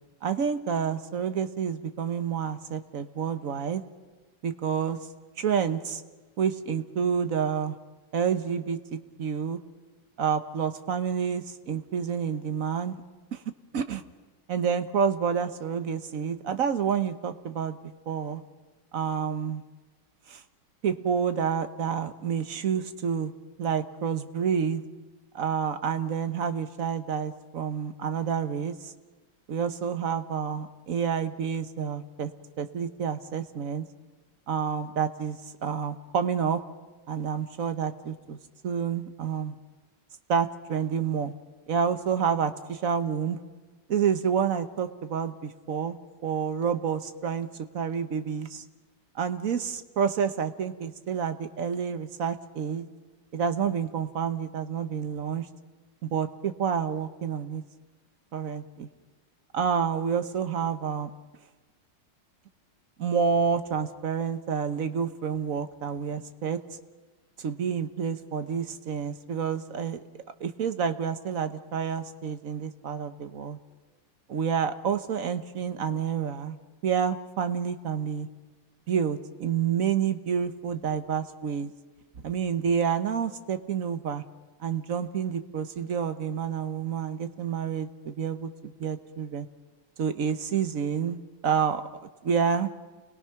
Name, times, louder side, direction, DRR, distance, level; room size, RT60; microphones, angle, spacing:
voice 1, 0.2-3.8 4.4-5.0 5.4-6.0 6.4-7.8 8.1-8.8 9.2-9.6 10.2-13.0 13.3-13.4 13.7-14.0 14.5-17.8 18.1-18.4 18.9-19.6 20.3-20.4 20.8-23.3 23.6-24.8 25.3-28.9 29.5-32.3 32.6-33.8 34.5-36.6 37.1-38.4 38.6-39.6 40.3-41.3 41.7-43.4 43.9-46.0 46.2-47.5 47.7-48.6 49.1-52.9 53.3-55.5 56.0-57.6 58.3-58.9 59.5-61.1 63.0-66.6 67.4-70.0 70.4-73.6 74.3-76.6 76.8-78.3 78.9-81.7 82.2-84.2 84.6-89.5 90.0-91.8 92.2-92.7, right 7 dB, 55° right, 10 dB, 1.2 m, -29 dB
29.5 x 21.0 x 5.9 m, 1.3 s
omnidirectional pair, 2.0 m